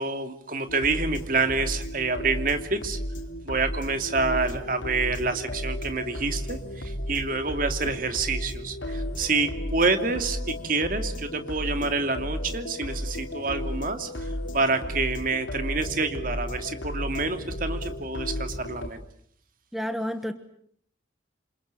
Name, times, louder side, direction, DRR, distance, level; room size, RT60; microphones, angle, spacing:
voice 1, 0.0-3.0 3.4-19.0, right 3 dB, 45° right, 7 dB, 2.8 m, -28 dB
sound 1, 0.7-18.9, equal, 85° left, 3.5 m, -34 dB
voice 2, 19.7-20.3, equal, ahead, 8 dB, 1.2 m, -30 dB
28.5 x 27.0 x 7.7 m, 0.65 s
head